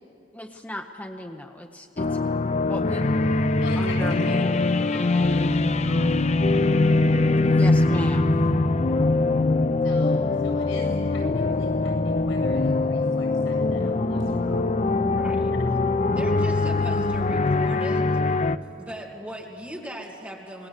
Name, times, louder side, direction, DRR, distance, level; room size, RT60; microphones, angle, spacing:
voice 1, 0.3-2.2 2.6-3.1 3.8-4.1 7.4-8.3, left 1 dB, 10° left, 4 dB, 0.8 m, -35 dB
sound 1, 2.0-18.6, left 2 dB, 35° left, 0.5 m, -22 dB
voice 2, 3.6-6.4 9.8-14.6, left 3 dB, 80° left, 1 dB, 8.0 m, -40 dB
voice 3, 15.0-15.5 16.1-18.1 18.8-20.7, equal, 5° right, -1 dB, 2.4 m, -38 dB
27.0 x 20.0 x 8.3 m, 2.7 s
head